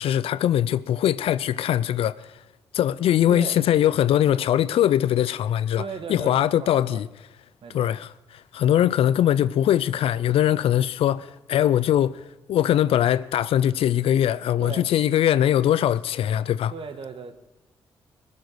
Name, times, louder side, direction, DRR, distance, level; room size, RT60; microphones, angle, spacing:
voice 1, 0.0-2.4 2.7-5.8 6.1-7.1 7.7-8.1 8.5-12.2 12.5-16.7, left 11 dB, 70° left, 0.5 m, -21 dB
voice 2, 5.8-7.0 7.6-7.9 14.6-14.9 16.7-17.3, right 6 dB, 60° right, 1.5 m, -36 dB
21.0 x 7.4 x 6.3 m
hypercardioid pair, 40°, 10 cm